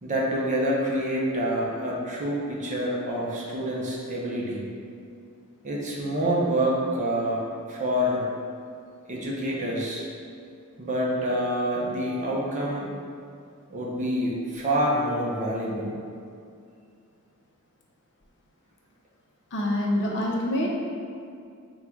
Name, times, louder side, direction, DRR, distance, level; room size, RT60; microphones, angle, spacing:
voice 1, 0.0-4.6 5.6-7.4 7.7-8.3 9.1-10.0 10.8-12.9 13.7-16.0, equal, 35° right, -4 dB, 0.7 m, -27 dB
voice 2, 19.5-20.7, left 1 dB, 55° left, -1 dB, 0.6 m, -25 dB
3.9 x 2.3 x 4.5 m, 2.3 s
head